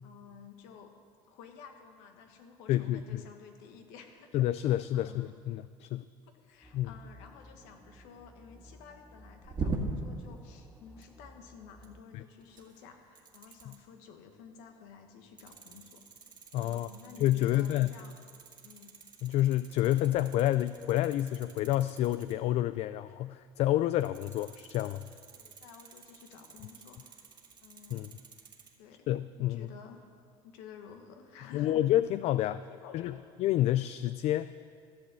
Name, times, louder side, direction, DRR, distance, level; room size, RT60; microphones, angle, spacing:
voice 1, 0.0-0.9 1.3-4.7 4.9-5.3 6.2-16.0 16.6-18.1 18.6-18.9 25.3-27.2 27.6-28.1 28.8-29.1 29.4-30.0 30.4-31.9 32.5-33.2, left 7 dB, 85° left, 5 dB, 1.5 m, -52 dB
voice 2, 2.7-3.2 4.3-6.0 6.7-6.9 12.1-12.2 16.5-16.9 17.2-18.0 19.2-25.0 27.9-28.1 29.1-29.7 31.5-32.6 32.9-33.1 33.4-34.5, left 13 dB, 60° left, 14 dB, 0.4 m, -29 dB
sound 1, 6.6-12.0, equal, ahead, 0.9 m, -56 dB
sound 2, 9.4-10.2 10.9-11.2 11.8-11.9 12.4-12.9 13.1-13.8 15.4-22.4 24.0-28.7, right 3 dB, 40° right, 1.9 m, -43 dB
14.5 x 7.6 x 7.6 m, 2.2 s
supercardioid pair, 105°, 12 cm